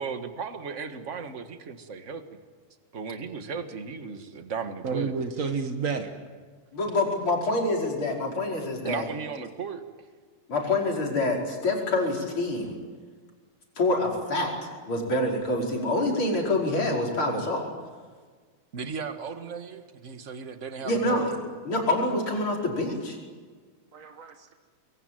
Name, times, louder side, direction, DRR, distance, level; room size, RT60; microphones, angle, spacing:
voice 1, 0.0-2.2 2.9-5.2 8.8-9.8 18.7-21.3, right 5 dB, 35° right, 8 dB, 1.4 m, -36 dB
voice 2, 4.8-6.2 23.9-24.5, right 5 dB, 50° right, 5 dB, 0.9 m, -30 dB
voice 3, 6.7-9.1 10.5-12.8 13.8-17.7 20.8-21.3 21.6-23.2, left 2 dB, 45° left, -1 dB, 5.9 m, -26 dB
25.5 x 22.5 x 9.2 m, 1.5 s
omnidirectional pair, 3.3 m